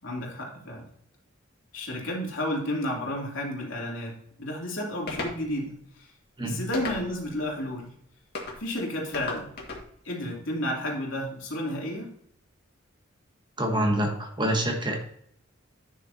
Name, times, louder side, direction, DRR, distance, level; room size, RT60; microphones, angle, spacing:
voice 1, 0.0-0.9 1.7-6.1 6.4-7.9 8.6-9.5 10.0-12.1, left 1 dB, 70° left, -2 dB, 3.0 m, -32 dB
sound 1, 5.1-5.4 6.7-7.3 8.3-8.6 9.1-9.8, left 3 dB, 55° left, 1.9 m, -34 dB
voice 2, 13.6-15.0, right 1 dB, 25° right, 3 dB, 1.3 m, -26 dB
10.0 x 6.5 x 2.8 m, 0.68 s
head